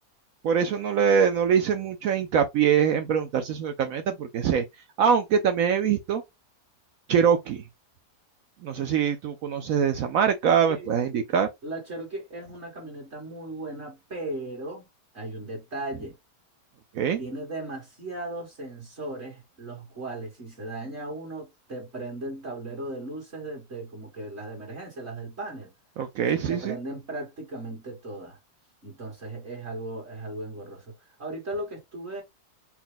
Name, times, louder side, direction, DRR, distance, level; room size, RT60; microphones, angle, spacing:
voice 1, 0.4-4.6 5.0-6.2 7.1-7.6 8.6-11.5 16.9-17.2 26.0-26.8, right 7 dB, 70° right, 0.9 m, -23 dB
voice 2, 10.7-11.2 11.6-14.9 15.1-16.2 17.2-25.7 26.4-28.4 28.8-30.9 31.2-32.2, right 2 dB, 40° right, 1.8 m, -37 dB
4.4 x 2.1 x 3.9 m
omnidirectional pair, 1.8 m